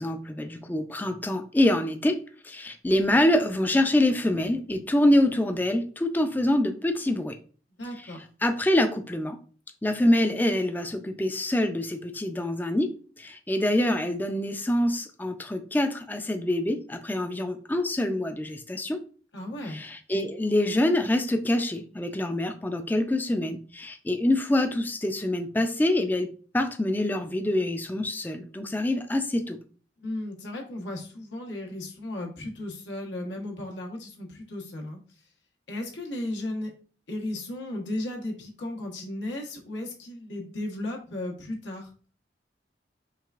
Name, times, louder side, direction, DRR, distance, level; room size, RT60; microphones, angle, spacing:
voice 1, 0.0-2.2 2.4-7.4 8.4-9.4 9.8-19.0 19.7-29.6, left 1 dB, 10° left, 7 dB, 0.4 m, -25 dB
voice 2, 7.8-8.2 19.3-19.8 30.0-35.0 35.7-36.7 37.1-41.9, left 1 dB, 85° left, 0 dB, 1.2 m, -35 dB
4.7 x 3.3 x 2.4 m, 0.39 s
head